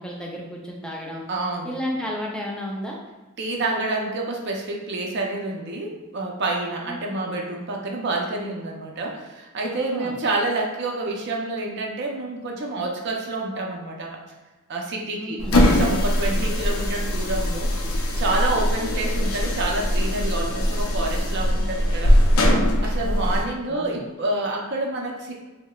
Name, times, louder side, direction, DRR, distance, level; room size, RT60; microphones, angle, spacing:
voice 1, 0.0-1.2 1.6-3.0 6.9-7.0 9.7-10.1 15.2-15.6 16.3-16.4 23.0-23.4 23.7-24.0, equal, 5° left, -3 dB, 0.4 m, -32 dB
voice 2, 1.3-1.8 3.4-14.2 14.7-17.7 18.2-22.2 22.8-25.3, right 2 dB, 50° right, 0 dB, 0.5 m, -28 dB
sound 1, 15.4-23.5, equal, 80° left, 0.5 m, -21 dB
4.6 x 2.1 x 2.3 m, 1.2 s
head